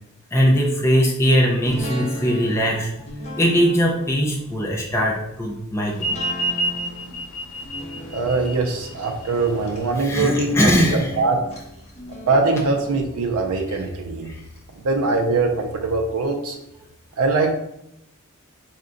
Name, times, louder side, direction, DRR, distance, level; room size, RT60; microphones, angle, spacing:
voice 1, 0.3-2.9 3.4-6.1 10.0-11.1 14.3-14.4, equal, 10° left, -2 dB, 0.5 m, -20 dB
sound 1, 1.6-14.6 15.0-15.1, equal, 30° left, 0.9 m, -37 dB
sound 2, 5.9-10.9, right 1 dB, 65° left, 0.7 m, -29 dB
voice 2, 8.1-11.4 12.3-14.3 14.8-16.6 17.2-17.5, right 3 dB, 75° right, 1 dB, 0.5 m, -22 dB
4.7 x 2.2 x 3.8 m, 0.83 s
head